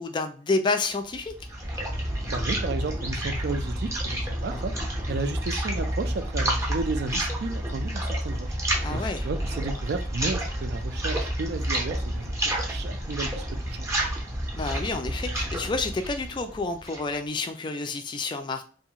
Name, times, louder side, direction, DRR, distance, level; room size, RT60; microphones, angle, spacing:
voice 1, 0.0-1.3 8.8-9.3 14.5-18.6, left 3 dB, 25° left, 0.3 m, -29 dB
sound 1, 1.1-17.1, right 1 dB, 15° right, 0.6 m, -30 dB
voice 2, 2.3-8.6 8.9-13.9, right 3 dB, 60° right, 0.4 m, -33 dB
2.7 x 2.4 x 2.8 m
head